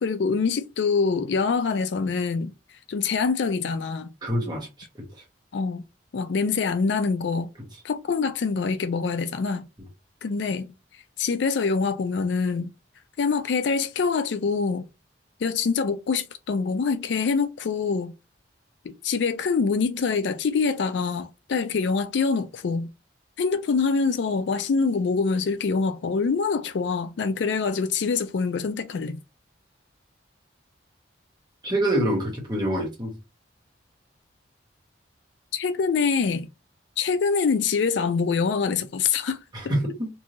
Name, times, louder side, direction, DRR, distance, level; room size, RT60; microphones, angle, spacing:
voice 1, 0.0-2.5 2.9-4.1 5.5-5.8 6.1-7.5 7.8-9.7 10.2-10.7 11.2-12.7 13.2-14.8 15.4-18.1 18.8-22.9 23.4-29.2 35.5-36.5 37.0-39.4 39.6-39.7, left 5 dB, 70° left, 0.4 m, -25 dB
voice 2, 4.2-4.7 31.6-33.1 39.5-40.1, right 1 dB, 20° right, 1.0 m, -25 dB
3.0 x 2.6 x 2.6 m
head